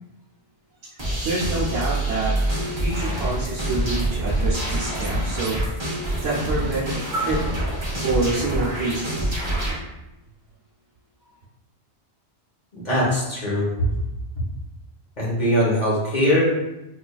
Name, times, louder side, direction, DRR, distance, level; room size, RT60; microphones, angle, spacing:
sound 1, 1.0-9.7, right 1 dB, 30° right, 0.7 m, -26 dB
voice 1, 1.2-2.3 2.8-5.6 6.2-7.4 8.0-9.3, right 2 dB, 85° right, -7 dB, 1.1 m, -26 dB
voice 2, 12.7-14.0 15.2-16.4, equal, 40° left, -6 dB, 1.1 m, -21 dB
4.6 x 2.4 x 2.2 m, 0.95 s
omnidirectional pair, 1.1 m